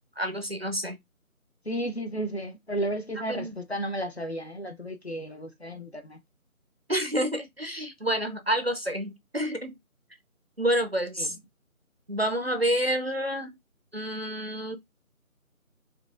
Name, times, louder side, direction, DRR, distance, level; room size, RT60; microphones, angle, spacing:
voice 1, 0.2-1.0 3.3-3.6 6.9-9.7 10.6-11.3 12.1-13.6 13.9-14.8, equal, 45° right, 0.5 m, -28 dB
voice 2, 1.6-6.2 11.2-11.4, right 1 dB, 50° left, 0.6 m, -33 dB
4.6 x 2.4 x 2.4 m
figure-of-eight pair, 160°, 43 cm